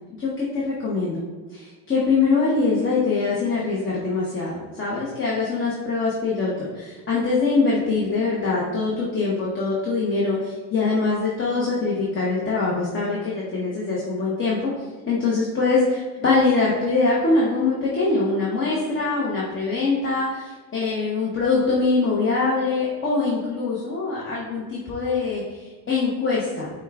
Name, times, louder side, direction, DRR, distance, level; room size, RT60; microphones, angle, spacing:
voice 1, 0.2-1.2 1.5-14.7 15.1-26.7, left 3 dB, 30° left, -6 dB, 0.9 m, -23 dB
5.2 x 2.3 x 3.5 m, 1.4 s
cardioid pair, 110°, 44 cm